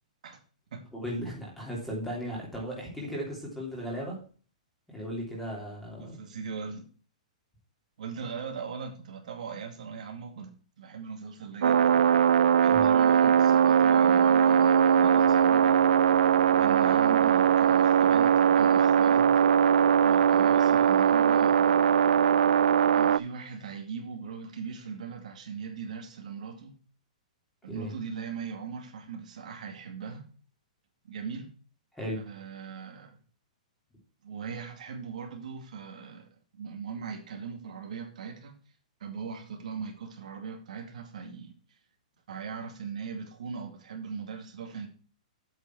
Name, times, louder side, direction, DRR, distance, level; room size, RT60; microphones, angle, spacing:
voice 1, 0.9-4.2 4.9-6.2 12.7-12.9 16.8-17.0 27.7-27.9 31.9-32.2, equal, 5° left, 3.1 m, -36 dB
voice 2, 6.0-6.8 8.0-10.5 10.8-12.0 12.6-15.8 16.5-19.3 20.0-21.9 22.9-26.8 27.6-30.3 31.0-31.5 32.1-33.2 34.2-38.5 39.0-41.5 42.3-44.9, right 6 dB, 65° right, 2.2 m, -39 dB
sound 1, 11.6-23.2, right 8 dB, 85° right, 0.4 m, -21 dB
8.3 x 7.2 x 4.6 m
hypercardioid pair, 170°, 4 cm